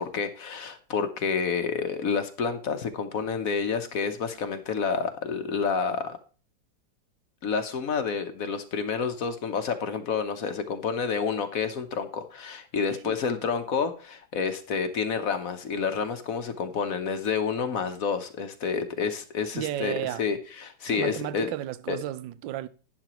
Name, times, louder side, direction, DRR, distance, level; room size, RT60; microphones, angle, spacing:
voice 1, 0.0-6.2 7.4-21.5 21.9-22.0, left 5 dB, 55° left, 1.1 m, -29 dB
voice 2, 19.5-20.2 20.9-22.7, right 13 dB, 80° right, 1.4 m, -33 dB
11.5 x 9.9 x 3.0 m
omnidirectional pair, 2.0 m